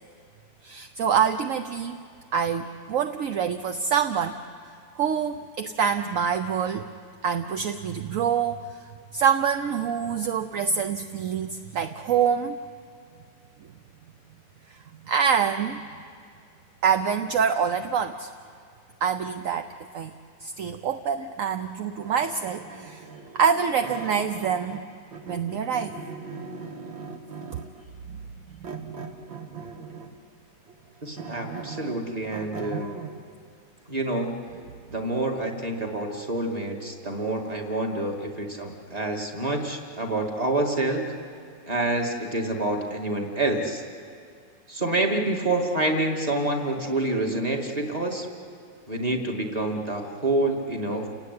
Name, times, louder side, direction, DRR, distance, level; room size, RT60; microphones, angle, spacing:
voice 1, 0.6-2.0 2.3-4.4 5.0-6.9 7.2-8.8 9.1-12.6 14.7-15.8 16.8-18.3 19.0-19.7 19.9-20.1 20.4-23.1 23.3-24.8 25.2-26.0 28.1-28.2 28.6-29.2, right 7 dB, 60° right, 8 dB, 0.9 m, -26 dB
sound 1, 22.0-24.8 25.1-27.8 28.6-30.2 30.7-33.2, right 5 dB, 80° right, 2.3 m, -39 dB
voice 2, 31.0-32.9 33.9-34.3 34.9-41.0 41.7-43.8 44.7-48.3 48.9-51.1, right 2 dB, 20° right, 1 dB, 2.4 m, -27 dB
29.5 x 18.0 x 9.6 m, 2.3 s
omnidirectional pair, 2.0 m